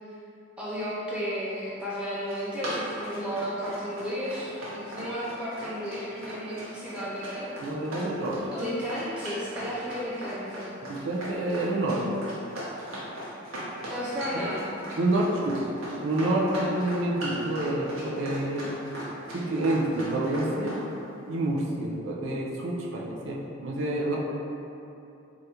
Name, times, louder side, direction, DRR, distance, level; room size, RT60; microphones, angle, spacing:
voice 1, 0.6-7.5 8.5-10.7 13.9-14.7 23.3-23.4, equal, 5° right, -9 dB, 0.4 m, -33 dB
Run, 2.1-20.8, right 1 dB, 90° right, 0.9 m, -38 dB
voice 2, 7.6-8.4 10.8-12.1 14.3-14.6 15.0-15.7 16.0-18.7 19.3-20.8 21.3-24.2, right 1 dB, 65° right, -3 dB, 0.5 m, -28 dB
3.4 x 2.5 x 2.8 m, 2.8 s
head